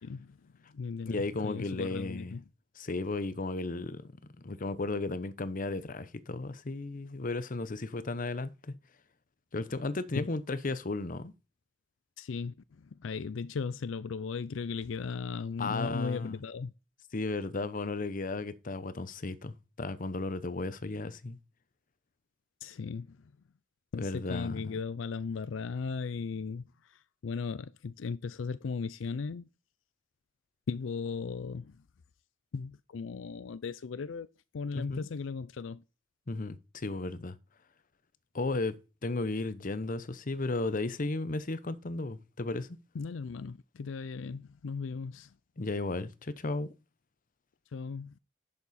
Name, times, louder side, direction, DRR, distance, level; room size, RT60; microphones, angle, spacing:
voice 1, 0.0-2.4 10.2-10.3 12.2-16.7 22.6-23.2 23.9-29.4 30.7-31.8 32.5-34.3 34.5-35.8 42.9-45.3 47.7-48.2, left 5 dB, 80° left, 0.5 m, -37 dB
voice 2, 1.0-2.4 2.8-4.1 4.4-8.7 9.5-11.3 15.6-16.4 17.1-21.4 24.0-24.8 34.7-35.0 36.3-37.4 38.3-38.8 39.0-42.7 45.6-46.7, left 2 dB, 45° left, 0.8 m, -34 dB
10.5 x 6.8 x 4.2 m
head